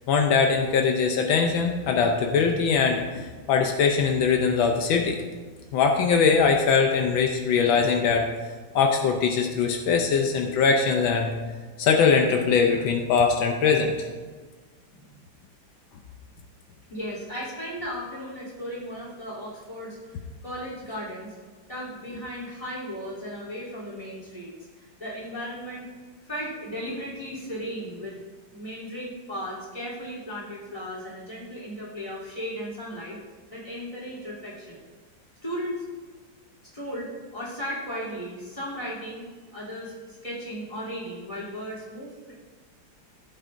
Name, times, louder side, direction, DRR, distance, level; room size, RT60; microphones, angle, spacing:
voice 1, 0.1-5.2 5.7-8.3 8.7-11.4 11.8-14.1, left 5 dB, 80° left, 3 dB, 1.5 m, -22 dB
voice 2, 16.9-21.3 21.7-25.9 26.2-28.2 28.5-33.2 33.5-34.8 35.4-35.8 36.6-42.3, equal, 15° left, -6 dB, 3.3 m, -36 dB
16.0 x 8.0 x 2.6 m, 1.4 s
omnidirectional pair, 2.1 m